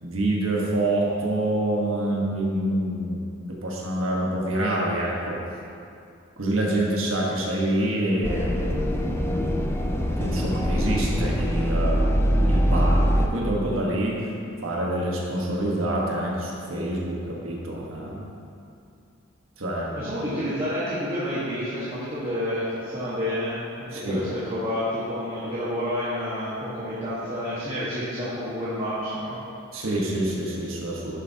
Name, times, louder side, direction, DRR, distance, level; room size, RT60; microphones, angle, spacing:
voice 1, 0.0-3.2 3.5-5.4 6.4-8.9 10.2-14.2 14.6-18.2 19.6-20.1 23.9-24.2 29.7-31.2, right 1 dB, 75° right, -3 dB, 1.3 m, -26 dB
sound 1, 8.2-13.3, equal, 10° left, 0.4 m, -23 dB
voice 2, 19.9-29.4, equal, 30° right, -10 dB, 1.4 m, -29 dB
11.0 x 7.2 x 2.8 m, 2.5 s
head